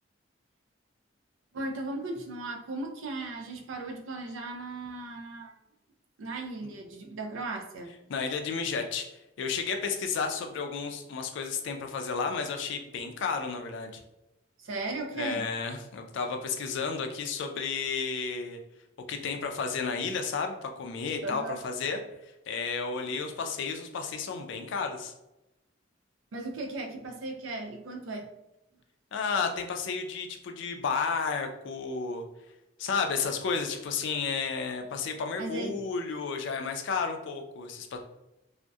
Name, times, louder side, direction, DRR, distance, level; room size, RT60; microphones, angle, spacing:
voice 1, 1.5-5.6 6.2-7.9 14.6-15.5 21.2-21.6 26.3-28.3 35.4-35.8, right 2 dB, 80° right, 3 dB, 0.4 m, -36 dB
voice 2, 8.1-9.1 9.4-14.0 15.2-18.6 19.1-25.1 29.1-32.2 32.8-38.0, left 5 dB, 65° left, 5 dB, 0.4 m, -32 dB
2.6 x 2.1 x 2.2 m, 0.91 s
head